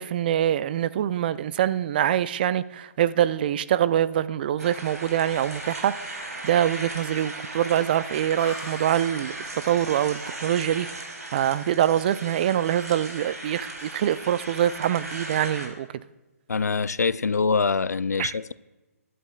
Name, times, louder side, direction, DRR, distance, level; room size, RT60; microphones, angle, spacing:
voice 1, 0.0-9.3 9.6-15.9 18.2-18.3, right 11 dB, 35° right, 0.4 m, -24 dB
sound 1, 4.6-15.7, right 2 dB, 80° right, 3.1 m, -37 dB
sound 2, 8.4-11.9, left 3 dB, 25° left, 3.8 m, -48 dB
voice 2, 16.5-18.5, left 4 dB, 85° left, 0.4 m, -24 dB
19.5 x 11.0 x 2.3 m
figure-of-eight pair, 140°, 8 cm